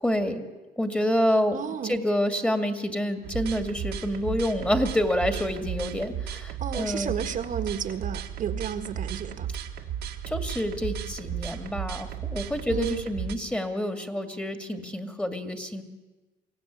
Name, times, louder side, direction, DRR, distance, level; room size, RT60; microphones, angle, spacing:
voice 1, 0.0-7.2 10.3-15.8, equal, 5° left, 7 dB, 2.1 m, -28 dB
voice 2, 1.5-2.0 6.6-9.5 12.7-13.0, right 8 dB, 50° right, 7 dB, 1.6 m, -32 dB
sound 1, 3.2-13.3, right 8 dB, 75° right, 1.9 m, -34 dB
23.0 x 16.0 x 9.9 m, 1.2 s
cardioid pair, 110°, 17 cm